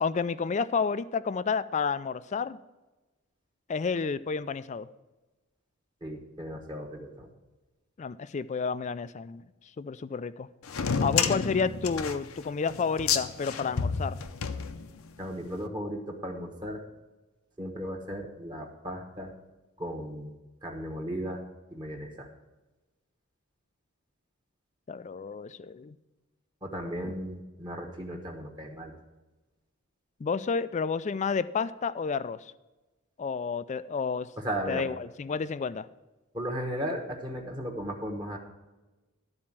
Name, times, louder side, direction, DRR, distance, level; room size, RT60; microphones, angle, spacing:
voice 1, 0.0-2.6 3.7-4.9 8.0-9.4 9.8-10.5 11.0-14.2 24.9-26.0 27.0-27.1 30.2-32.5 33.2-34.3 34.7-35.9, left 5 dB, 35° left, 15 dB, 0.3 m, -30 dB
voice 2, 6.0-7.3 11.0-11.3 15.2-16.8 17.6-19.3 19.8-20.3 20.6-21.4 21.7-22.3 26.6-28.9 34.4-34.8 36.3-38.4, equal, 20° right, 1 dB, 1.1 m, -36 dB
sound 1, 10.7-15.2, left 6 dB, 75° left, 0.7 m, -30 dB
12.0 x 4.3 x 7.3 m, 1.1 s
head